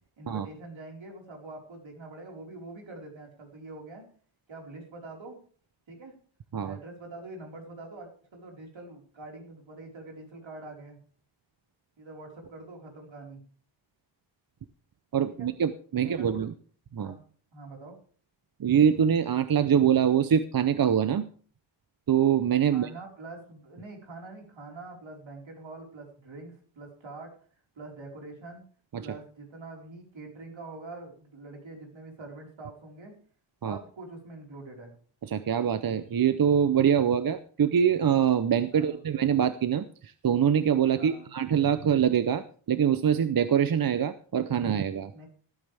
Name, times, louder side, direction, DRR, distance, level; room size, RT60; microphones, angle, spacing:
voice 1, 0.2-4.0 4.5-5.4 5.9-6.1 6.6-11.0 12.0-13.4 15.4-15.5 15.9-16.4 17.0-17.2 17.5-18.0 22.7-27.4 27.8-28.7 29.0-33.1 33.6-34.9 38.7-39.0 40.9-41.3 45.1-45.3, right 2 dB, 70° right, 1 dB, 4.6 m, -44 dB
voice 2, 15.1-16.5 16.9-17.1 18.6-21.3 22.1-22.9 28.9-29.1 33.6-33.8 35.3-45.1, right 8 dB, 45° right, 12 dB, 0.6 m, -24 dB
14.5 x 13.5 x 3.4 m, 0.43 s
wide cardioid pair, 160°, 48 cm